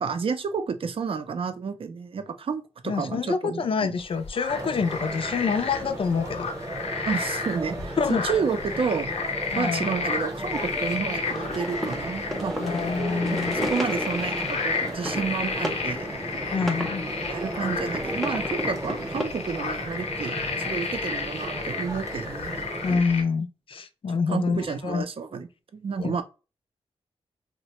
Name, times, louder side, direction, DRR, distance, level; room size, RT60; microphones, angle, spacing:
voice 1, 0.0-3.9 7.1-8.0 8.2-9.1 9.5-12.8 13.3-16.1 17.3-23.0 24.3-26.2, right 5 dB, 55° right, 0.5 m, -30 dB
voice 2, 2.9-6.5 8.0-8.2 9.5-9.9 12.6-13.6 16.5-17.0 22.8-25.1 26.0-26.2, left 5 dB, 55° left, 0.4 m, -27 dB
sound 1, 4.0-23.2, left 4 dB, 90° left, 0.7 m, -32 dB
sound 2, 4.5-23.0, right 1 dB, 25° right, 0.8 m, -36 dB
sound 3, 11.2-19.3, equal, ahead, 0.6 m, -34 dB
3.2 x 2.1 x 2.8 m
wide cardioid pair, 110°, 11 cm